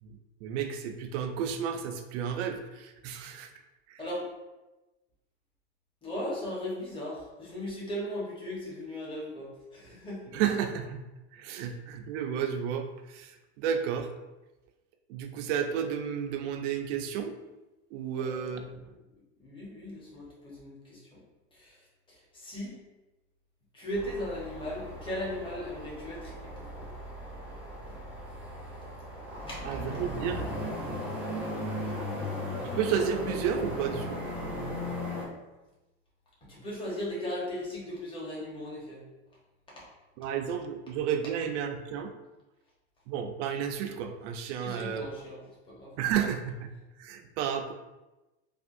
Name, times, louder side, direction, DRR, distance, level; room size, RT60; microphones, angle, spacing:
voice 1, 0.0-3.5 3.9-4.0 10.3-11.0 11.3-14.1 15.1-17.3 17.9-18.6 29.7-30.4 32.6-34.2 40.2-42.1 43.1-45.1 46.0-46.7 47.0-47.7, right 8 dB, 75° right, 5 dB, 0.5 m, -32 dB
voice 2, 4.0-4.3 6.0-10.3 11.5-11.7 18.1-18.9 19.4-21.2 21.5-21.8 22.1-22.8 23.7-26.9 29.5-29.8 36.4-39.0 39.8-39.9 44.6-45.9, left 1 dB, 15° left, -6 dB, 1.0 m, -38 dB
sound 1, 23.9-35.3, equal, 5° right, 0.7 m, -37 dB
3.4 x 2.3 x 2.6 m, 1.1 s
supercardioid pair, 125°, 35 cm